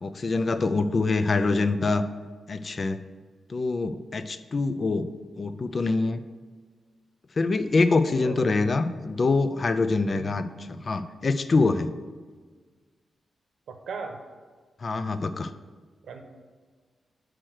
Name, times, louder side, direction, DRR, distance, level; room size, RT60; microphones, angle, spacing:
voice 1, 0.0-2.0 2.5-3.0 3.5-5.1 5.4-6.2 7.4-11.9 14.8-15.5, left 3 dB, 35° left, 11 dB, 0.3 m, -25 dB
voice 2, 8.1-8.6 10.1-10.5 13.7-14.2 16.0-16.2, right 5 dB, 80° right, 5 dB, 0.8 m, -38 dB
6.2 x 4.4 x 6.3 m, 1.5 s
wide cardioid pair, 145°, 0 cm